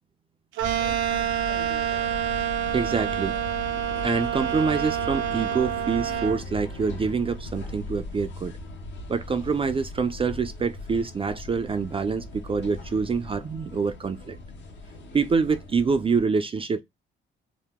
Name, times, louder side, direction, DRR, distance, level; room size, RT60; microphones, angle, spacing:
sound 1, 0.6-16.2, left 2 dB, 65° left, 1.0 m, -39 dB
sound 2, 0.6-6.4, right 10 dB, 90° right, 0.6 m, -27 dB
sound 3, 1.1-7.2, left 4 dB, 25° left, 0.6 m, -47 dB
voice 1, 2.7-3.3 4.0-8.5 9.1-14.4 15.1-16.8, right 5 dB, 30° right, 0.4 m, -26 dB
2.9 x 2.1 x 3.4 m
cardioid pair, 90°, 20 cm